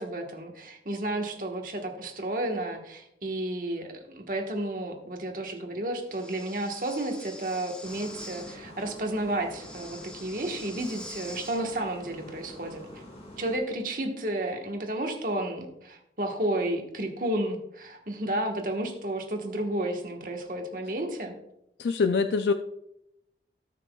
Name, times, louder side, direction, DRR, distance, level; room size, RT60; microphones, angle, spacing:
voice 1, 0.0-12.8 13.4-21.3, right 1 dB, 50° right, 3 dB, 1.3 m, -32 dB
Breathing, 6.1-8.6 9.5-11.6, left 1 dB, 5° left, 0.7 m, -45 dB
sound 1, 7.8-13.6, left 1 dB, 35° left, 1.7 m, -46 dB
voice 2, 21.8-22.5, left 4 dB, 75° left, 8 dB, 0.4 m, -24 dB
17.5 x 6.0 x 2.3 m, 0.80 s
head